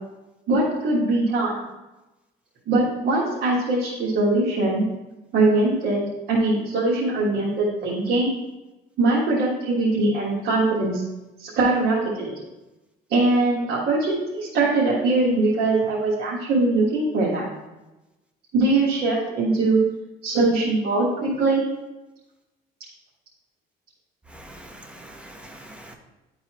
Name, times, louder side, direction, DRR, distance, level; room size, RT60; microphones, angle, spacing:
voice 1, 0.5-1.6 2.7-4.9 5.3-8.3 9.0-11.0 11.4-12.3 13.1-17.5 18.5-19.8 20.2-21.6, right 2 dB, 70° right, -6 dB, 1.7 m, -21 dB
voice 2, 24.3-25.9, right 1 dB, 5° right, 2 dB, 1.0 m, -43 dB
11.0 x 4.0 x 3.1 m, 1.0 s
cardioid pair, 110°, 17 cm